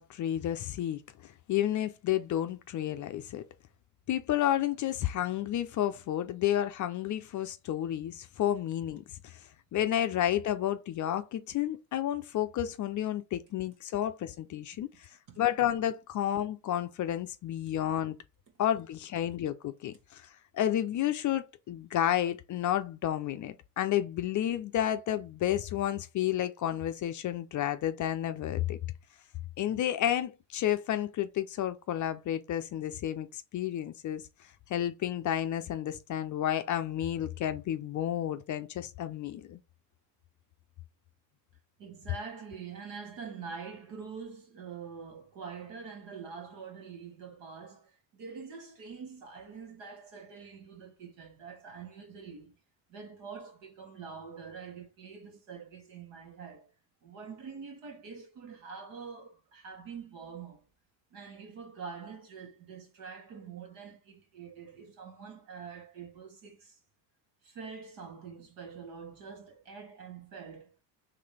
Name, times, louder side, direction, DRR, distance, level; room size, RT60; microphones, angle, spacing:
voice 1, 0.0-3.4 4.1-18.2 18.6-28.8 29.6-34.2 34.7-39.6, left 11 dB, 40° left, 0.5 m, -31 dB
voice 2, 41.8-52.6 52.9-56.7 57.0-60.6 61.1-66.8 67.4-70.7, right 5 dB, 60° right, 1.7 m, -45 dB
3.8 x 3.4 x 3.3 m
hypercardioid pair, 70°, 50 cm